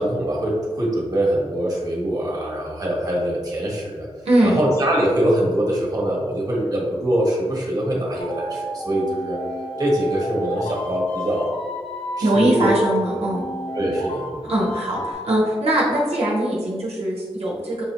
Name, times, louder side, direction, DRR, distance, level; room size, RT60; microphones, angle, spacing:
voice 1, 0.0-4.1 4.4-9.4 9.8-11.5 12.2-12.7 13.7-14.4, right 1 dB, 35° right, -3 dB, 1.1 m, -23 dB
voice 2, 4.2-4.6 12.2-13.4 14.4-17.8, right 1 dB, 80° right, -4 dB, 0.8 m, -21 dB
sound 1, 8.2-15.1, left 1 dB, 60° left, 0.7 m, -31 dB
6.0 x 2.1 x 3.0 m, 1.5 s
wide cardioid pair, 110°, 10 cm